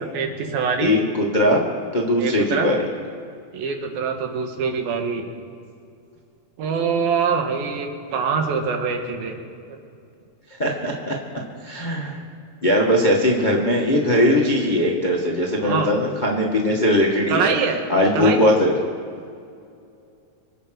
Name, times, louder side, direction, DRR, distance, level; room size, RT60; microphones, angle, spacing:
voice 1, 0.1-1.0 2.2-2.7 3.5-5.3 6.6-9.4 15.6-15.9 17.3-17.8 18.1-18.5, right 5 dB, 85° right, 4 dB, 3.3 m, -24 dB
voice 2, 0.8-1.6 1.9-2.8 10.6-11.1 11.6-12.2 12.6-17.5 17.9-18.7, left 1 dB, 70° left, -1 dB, 0.4 m, -20 dB
25.5 x 8.7 x 6.5 m, 2.4 s
omnidirectional pair, 4.1 m